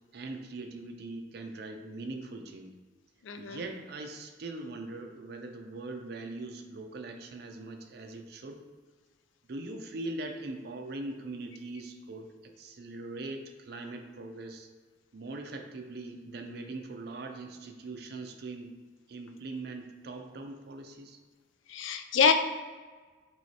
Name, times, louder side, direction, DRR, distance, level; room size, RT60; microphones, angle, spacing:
voice 1, 0.1-2.7 3.4-8.6 9.5-14.7 15.1-18.7 19.1-21.2, right 2 dB, 55° right, 4 dB, 0.4 m, -41 dB
voice 2, 3.2-3.6 21.7-22.3, left 6 dB, 80° left, 7 dB, 0.4 m, -25 dB
6.0 x 3.1 x 2.8 m, 1.4 s
head